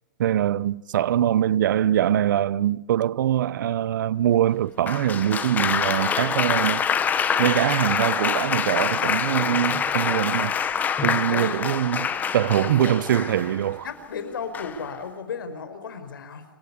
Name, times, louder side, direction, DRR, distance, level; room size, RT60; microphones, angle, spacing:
voice 1, 0.2-6.8 7.4-10.6 11.0-13.9, right 11 dB, 65° right, 0.8 m, -23 dB
Applause, 4.9-13.7 14.5-14.9, left 7 dB, 15° left, 1.3 m, -25 dB
voice 2, 11.3-11.6 12.6-13.0 13.8-16.4, left 6 dB, 80° left, 4.7 m, -34 dB
27.0 x 15.5 x 9.8 m
hypercardioid pair, 145°, 11 cm